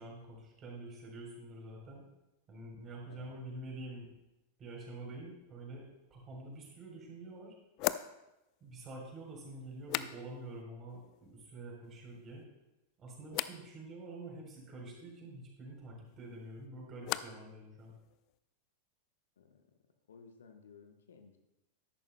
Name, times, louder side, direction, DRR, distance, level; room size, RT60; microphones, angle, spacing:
voice 1, 0.0-2.1 2.5-4.1 4.6-7.6 8.6-12.5 13.0-17.9, right 2 dB, 25° right, -1 dB, 3.6 m, -47 dB
voice 2, 3.1-3.4 19.4-19.7 20.1-21.4, left 5 dB, 65° left, 6 dB, 1.0 m, -57 dB
sound 1, 6.5-6.6 7.8-10.6 10.9-11.5 11.8-12.4 13.3-13.6 16.1-17.5 17.8-18.4, left 15 dB, 40° left, 0.3 m, -41 dB
13.0 x 11.0 x 2.2 m, 0.95 s
figure-of-eight pair, 90°, 0 cm